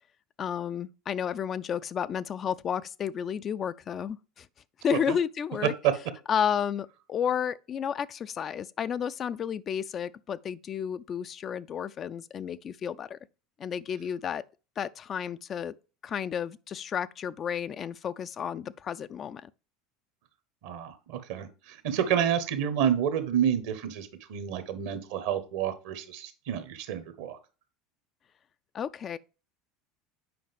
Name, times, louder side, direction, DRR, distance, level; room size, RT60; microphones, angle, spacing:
voice 1, 0.4-4.5 4.8-5.7 6.3-13.2 13.6-14.4 14.8-15.7 16.0-19.5 28.7-29.2, left 8 dB, 35° left, 0.3 m, -32 dB
voice 2, 20.6-27.4, right 9 dB, 60° right, 1.1 m, -29 dB
7.7 x 5.3 x 3.5 m
figure-of-eight pair, 70°, 0 cm